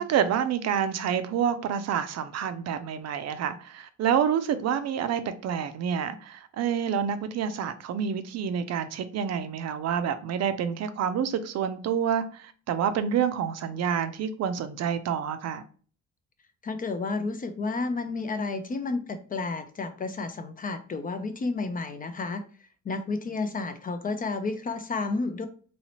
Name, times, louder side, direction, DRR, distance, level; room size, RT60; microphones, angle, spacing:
voice 1, 0.0-15.6, right 8 dB, 60° right, 0.4 m, -28 dB
voice 2, 16.6-22.4 22.8-25.5, left 3 dB, 30° left, 0.4 m, -31 dB
3.0 x 2.8 x 2.9 m
cardioid pair, 90°, 30 cm